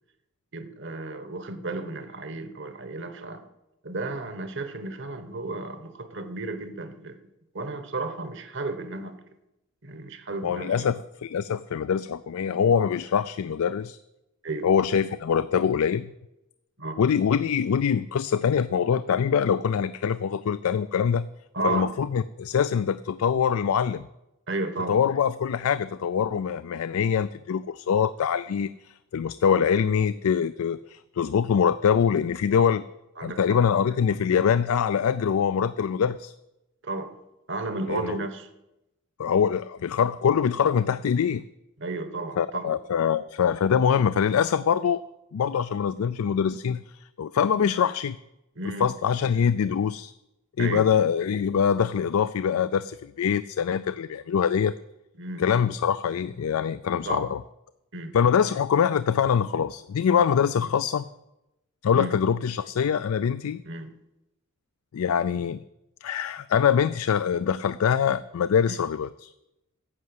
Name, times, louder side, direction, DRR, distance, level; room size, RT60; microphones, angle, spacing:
voice 1, 0.5-3.4 3.8-7.2 7.5-9.2 9.8-10.9 14.4-14.7 16.8-17.0 21.5-21.9 24.5-25.0 32.6-32.7 33.2-33.6 36.8-37.2 37.5-38.5 41.8-42.8 48.6-48.9 50.6-50.8 55.2-55.5 57.0-57.3 57.9-58.2 61.9-62.1 63.7-63.9 68.7-68.8, right 2 dB, 55° right, 1.2 m, -33 dB
voice 2, 10.4-14.0 14.6-16.1 17.0-21.3 21.6-24.1 24.9-32.8 33.2-36.3 37.9-38.2 39.2-41.4 42.4-45.0 45.3-48.2 48.8-50.1 50.6-54.7 55.4-57.4 58.1-61.0 61.8-63.6 64.9-65.6 66.0-69.3, left 7 dB, 80° left, 0.4 m, -24 dB
11.0 x 7.4 x 7.9 m
head